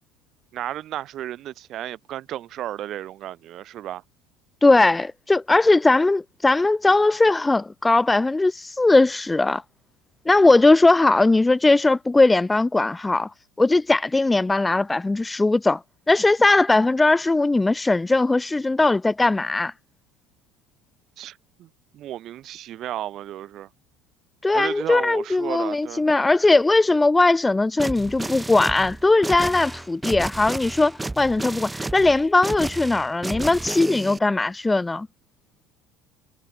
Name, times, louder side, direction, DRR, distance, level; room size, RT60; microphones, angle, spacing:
voice 1, 0.5-4.0 21.2-21.7 21.9-23.7 24.5-26.0, right 12 dB, 45° right, 3.8 m, -33 dB
voice 2, 4.6-9.6 10.3-13.3 13.6-15.8 16.1-19.7 24.4-35.1, left 2 dB, 10° left, 0.9 m, -19 dB
sound 1, 27.8-34.2, right 2 dB, 10° right, 1.1 m, -32 dB
cardioid pair, 145°, 0 cm